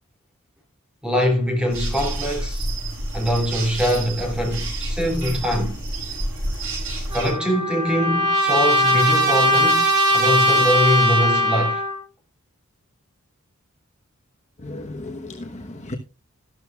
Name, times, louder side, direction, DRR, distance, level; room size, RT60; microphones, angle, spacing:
voice 1, 1.0-2.7 3.1-5.8 7.1-11.8, equal, 5° right, 2.9 m, -23 dB
sound 1, 1.7-7.3, right 1 dB, 65° right, 6.9 m, -29 dB
Trumpet, 7.1-12.0, equal, 25° right, 6.3 m, -19 dB
voice 2, 14.6-16.0, left 2 dB, 35° left, 1.1 m, -34 dB
13.5 x 12.5 x 2.4 m
head